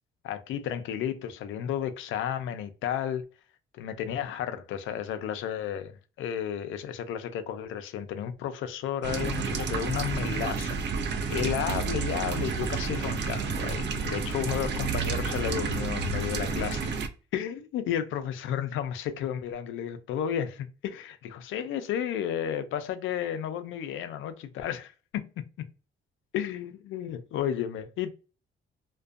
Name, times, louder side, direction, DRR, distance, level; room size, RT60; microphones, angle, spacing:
voice 1, 0.2-3.2 3.7-5.9 6.2-11.0 11.3-16.9 17.3-25.4 26.3-28.1, left 9 dB, 80° left, 0.4 m, -32 dB
sound 1, 9.0-17.1, right 4 dB, 60° right, 0.4 m, -30 dB
2.5 x 2.2 x 2.3 m
cardioid pair, 90°, 20 cm